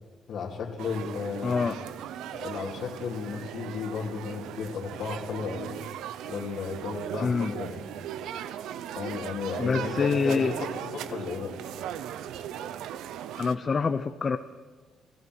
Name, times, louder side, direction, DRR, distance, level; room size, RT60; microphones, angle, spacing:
voice 1, 0.3-1.5 2.3-5.7 6.2-7.8 9.0-11.5, left 6 dB, 70° left, -3 dB, 2.7 m, -34 dB
sound 1, 0.8-13.6, right 10 dB, 85° right, 0.8 m, -38 dB
voice 2, 1.4-1.8 7.2-7.5 9.6-10.5 13.4-14.4, left 5 dB, 40° left, 9 dB, 0.8 m, -26 dB
28.0 x 16.0 x 6.2 m, 1.5 s
cardioid pair, 90°, 0 cm